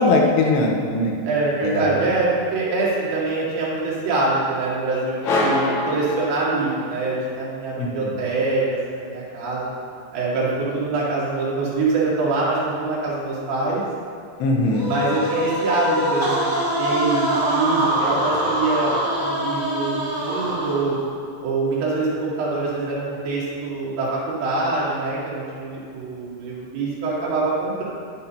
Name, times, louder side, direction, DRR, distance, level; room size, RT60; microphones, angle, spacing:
voice 1, 0.0-1.2 1.6-2.0 7.8-8.1 14.4-14.9, left 2 dB, 80° left, 0 dB, 3.0 m, -20 dB
voice 2, 1.2-9.7 10.1-13.8 14.9-21.0 21.4-27.8, right 3 dB, 75° right, -7 dB, 4.2 m, -24 dB
sound 1, 5.2-7.0, left 1 dB, 55° left, 2.5 m, -24 dB
sound 2, 14.7-21.1, equal, 15° right, 1.3 m, -24 dB
11.5 x 8.7 x 2.8 m, 2.3 s
omnidirectional pair, 5.0 m